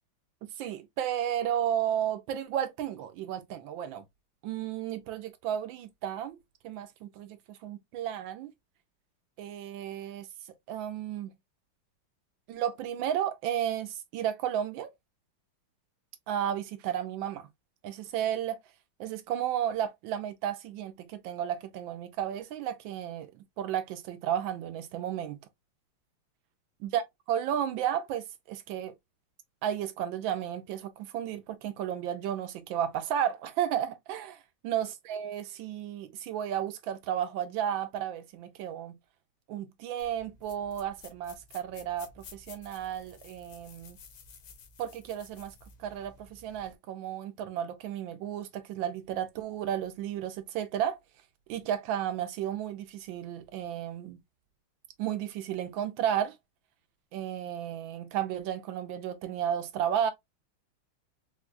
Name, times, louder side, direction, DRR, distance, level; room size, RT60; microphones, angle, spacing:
voice 1, 0.4-4.0 4.4-6.4 6.6-8.5 9.4-10.3 10.7-11.3 12.5-14.9 16.3-17.5 17.8-18.6 19.0-23.3 23.6-25.4 26.8-27.0 27.3-28.9 29.6-39.0 39.5-44.0 44.8-45.5 45.8-51.0 51.5-54.2 55.0-56.4 57.1-60.1, right 10 dB, 75° right, 1.2 m, -33 dB
sound 1, 40.0-46.7, left 5 dB, 70° left, 1.5 m, -53 dB
4.3 x 2.2 x 2.3 m
omnidirectional pair, 2.4 m